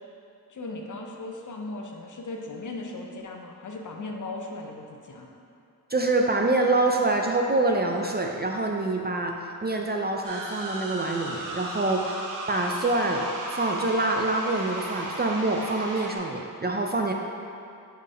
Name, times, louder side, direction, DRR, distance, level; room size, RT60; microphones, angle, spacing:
voice 1, 0.5-5.3, left 2 dB, 55° left, 1 dB, 0.7 m, -37 dB
voice 2, 5.9-17.1, right 2 dB, 30° right, 1 dB, 0.4 m, -26 dB
sound 1, 10.2-16.2, right 2 dB, 55° right, 0.9 m, -35 dB
5.2 x 4.6 x 4.8 m, 2.6 s
wide cardioid pair, 125°, 36 cm